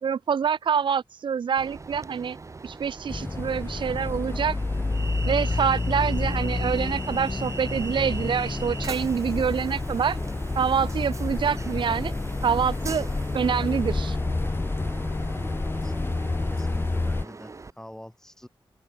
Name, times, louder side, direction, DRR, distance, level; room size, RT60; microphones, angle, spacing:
voice 1, 0.0-2.4 2.6-4.6 5.2-10.2 10.6-12.1 12.4-13.1 13.3-14.2, right 7 dB, 65° right, 0.6 m, -26 dB
Train, 1.6-17.7, right 3 dB, 35° right, 2.0 m, -41 dB
sound 1, 3.1-17.3, left 3 dB, 25° left, 1.7 m, -29 dB
voice 2, 15.7-18.5, left 1 dB, 5° left, 6.5 m, -46 dB
wide cardioid pair, 135°, 9 cm